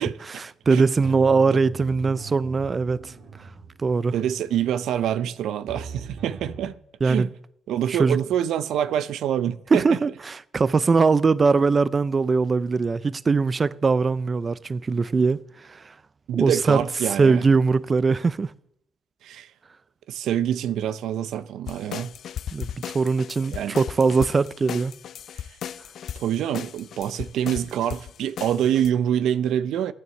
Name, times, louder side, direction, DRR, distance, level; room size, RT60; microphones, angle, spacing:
voice 1, 0.3-3.5 3.8-4.1 7.0-7.3 7.9-8.2 9.7-16.0 16.3-18.5 22.5-24.9, right 4 dB, 35° right, 0.5 m, -21 dB
sound 1, 1.0-6.7, right 5 dB, 65° right, 2.8 m, -41 dB
voice 2, 4.1-6.8 7.0-7.3 7.7-9.9 16.3-17.4 19.2-19.5 20.1-22.1 23.5-23.8 26.1-29.9, right 10 dB, 80° right, 0.7 m, -26 dB
sound 2, 21.7-28.9, left 9 dB, 65° left, 0.6 m, -36 dB
17.5 x 9.5 x 7.7 m
cardioid pair, 90°, 0 cm